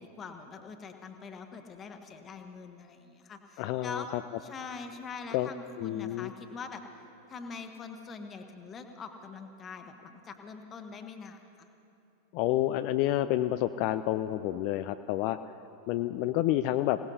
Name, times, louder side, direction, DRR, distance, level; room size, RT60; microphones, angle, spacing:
voice 1, 0.0-4.1 4.4-6.8 7.3-11.7, left 4 dB, 25° left, 6 dB, 1.2 m, -43 dB
voice 2, 3.6-4.2 5.3-5.5 5.8-6.3 12.3-15.4 15.9-17.0, left 14 dB, 45° left, 10 dB, 0.4 m, -29 dB
27.0 x 18.0 x 2.8 m, 2.9 s
figure-of-eight pair, 90°, 0 cm